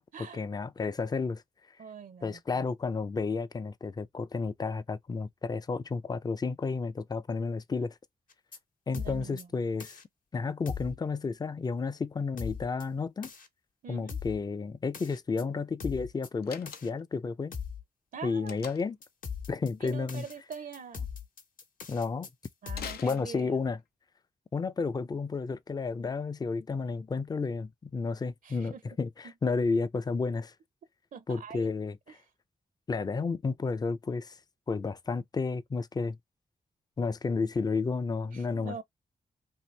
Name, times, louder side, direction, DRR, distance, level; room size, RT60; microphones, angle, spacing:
voice 1, 0.0-1.4 2.2-8.0 8.9-10.0 10.3-13.3 13.9-17.5 18.2-19.0 19.5-20.2 21.9-22.3 23.0-23.8 24.5-30.5 31.3-32.2 32.9-34.4 34.7-36.2 37.0-38.8, left 4 dB, 25° left, 0.4 m, -32 dB
voice 2, 1.8-2.6 8.9-9.5 13.8-14.2 18.1-18.6 19.8-21.1 22.6-23.6 28.4-28.8 29.2-29.3 31.1-31.7 32.1-32.2 38.3-38.8, right 6 dB, 65° right, 0.5 m, -44 dB
sound 1, 8.3-8.6 8.9-9.4 9.8-10.0 10.7-11.0 12.4-12.8 13.2-13.5 14.1-14.4 14.9-15.4 15.8-16.3 16.7-16.9 17.5-17.8 19.0-23.1, left 6 dB, 60° left, 0.9 m, -39 dB
Slam, 16.4-17.2 18.5-19.0 22.7-23.8, left 8 dB, 85° left, 0.5 m, -44 dB
2.7 x 2.6 x 3.2 m
cardioid pair, 65°, 15 cm